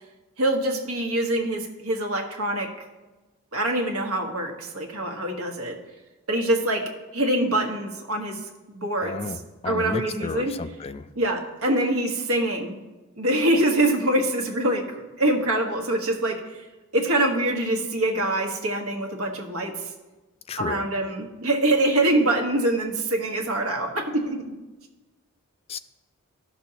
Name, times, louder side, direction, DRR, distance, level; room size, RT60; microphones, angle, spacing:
voice 1, 0.4-2.7 3.5-5.8 6.3-8.4 8.7-9.3 9.6-10.5 11.1-12.8 13.2-16.7 16.9-19.9 20.6-24.6, right 1 dB, 80° right, 2 dB, 1.3 m, -24 dB
voice 2, 9.0-11.1 20.5-20.9 25.7-25.8, left 4 dB, 30° left, 12 dB, 0.3 m, -33 dB
13.0 x 6.1 x 2.8 m, 1.1 s
head